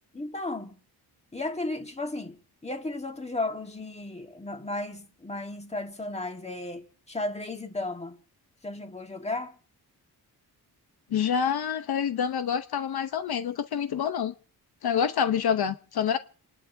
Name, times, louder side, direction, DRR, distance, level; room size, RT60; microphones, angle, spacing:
voice 1, 0.1-0.8 1.3-8.2 8.6-9.6, left 2 dB, 15° left, 1.6 m, -34 dB
voice 2, 11.1-14.3 14.8-16.2, left 8 dB, 70° left, 0.9 m, -27 dB
29.5 x 11.5 x 2.7 m
wide cardioid pair, 110°, 39 cm